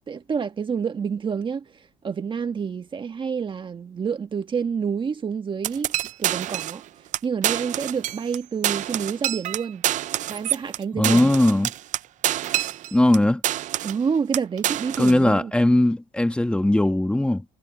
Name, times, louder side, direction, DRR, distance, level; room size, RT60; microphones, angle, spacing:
voice 1, 0.1-5.9 6.2-6.8 7.2-9.9 10.3-11.3 13.8-15.5, right 6 dB, 30° right, 1.5 m, -28 dB
sound 1, 5.6-6.8 7.1-7.2 7.4-8.4 8.6-13.2 13.4-14.0 14.3-15.2, right 13 dB, 45° right, 0.5 m, -27 dB
voice 2, 10.9-11.7 12.9-13.4 15.0-17.4, left 1 dB, 5° left, 1.6 m, -19 dB
cardioid pair, 120°, 17 cm